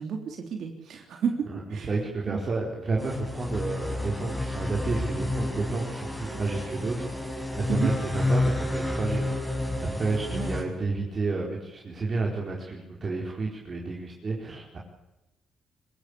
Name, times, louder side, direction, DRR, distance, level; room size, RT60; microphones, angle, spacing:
voice 1, 0.0-1.9 2.3-2.4 7.7-7.9 10.3-10.5, right 6 dB, 65° right, 3 dB, 3.4 m, -32 dB
voice 2, 1.5-7.1 7.6-9.3 9.8-14.8, right 3 dB, 40° right, -2 dB, 4.7 m, -31 dB
sound 1, 3.0-10.6, left 1 dB, 10° left, 5.5 m, -30 dB
25.0 x 16.0 x 8.6 m, 0.94 s
cardioid pair, 90°, 0 cm